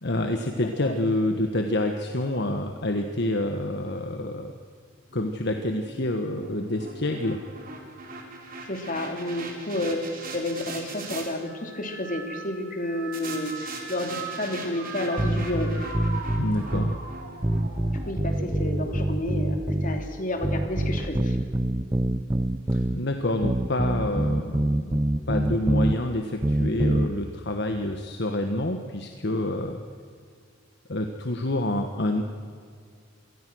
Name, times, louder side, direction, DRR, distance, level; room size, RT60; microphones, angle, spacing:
voice 1, 0.0-4.5 5.1-7.4 16.4-16.9 22.7-25.0 25.3-29.8 30.9-32.2, left 1 dB, 60° left, 5 dB, 1.4 m, -27 dB
sound 1, 5.1-11.3 13.1-19.4, right 3 dB, 50° right, 3.6 m, -41 dB
voice 2, 8.6-15.7 18.1-21.4, left 1 dB, 45° left, 4 dB, 3.0 m, -31 dB
sound 2, 11.4-21.0 21.5-22.1 23.0-23.4, right 2 dB, 65° right, 5.4 m, -41 dB
sound 3, 15.2-17.0 17.4-20.0 20.4-23.0 23.4-26.0 26.4-27.1, right 1 dB, 15° right, 0.7 m, -25 dB
26.5 x 19.5 x 6.3 m, 2.2 s
head